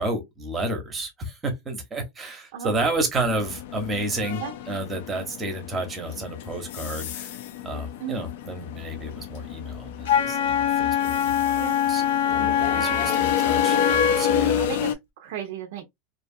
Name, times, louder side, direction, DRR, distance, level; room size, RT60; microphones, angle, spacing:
voice 1, 0.0-7.4 7.6-14.6, right 1 dB, 15° right, 0.8 m, -31 dB
sound 1, 3.3-14.9, left 8 dB, 65° left, 0.4 m, -31 dB
Wind instrument woodwind instrument, 10.0-14.6, left 9 dB, 85° left, 0.9 m, -23 dB
voice 2, 12.5-13.1 13.7-14.0 14.6-15.8, right 9 dB, 65° right, 0.5 m, -35 dB
2.6 x 2.3 x 2.5 m
supercardioid pair, 165°, 0 cm